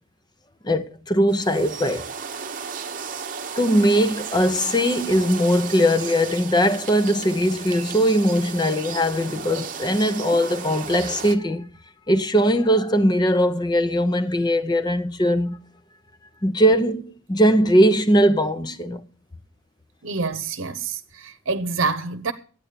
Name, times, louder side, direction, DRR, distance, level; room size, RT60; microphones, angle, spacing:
voice 1, 0.6-2.1 3.6-11.7 12.1-15.6 16.4-19.0, equal, 20° left, 0.7 m, -20 dB
sound 1, 1.3-11.4, right 6 dB, 40° right, 0.9 m, -34 dB
voice 2, 20.0-22.3, right 4 dB, 75° right, 0.9 m, -27 dB
12.0 x 8.9 x 6.7 m
head